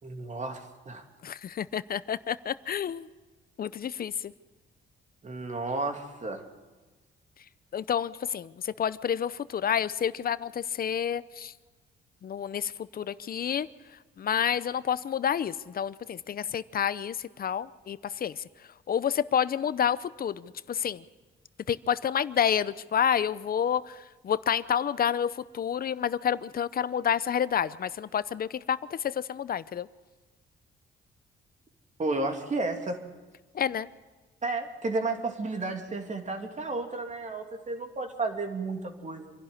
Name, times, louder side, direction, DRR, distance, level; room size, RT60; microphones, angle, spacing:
voice 1, 0.0-1.0 5.2-6.4 32.0-33.0 34.4-39.3, right 3 dB, 35° right, 5 dB, 2.8 m, -32 dB
voice 2, 1.2-3.1 3.6-4.3 7.7-11.5 12.2-13.7 14.2-18.4 18.9-21.0 21.7-24.0 24.2-29.9 33.5-33.9, left 8 dB, 50° left, 16 dB, 0.7 m, -29 dB
26.0 x 11.5 x 9.8 m, 1.3 s
cardioid pair, 90°, 20 cm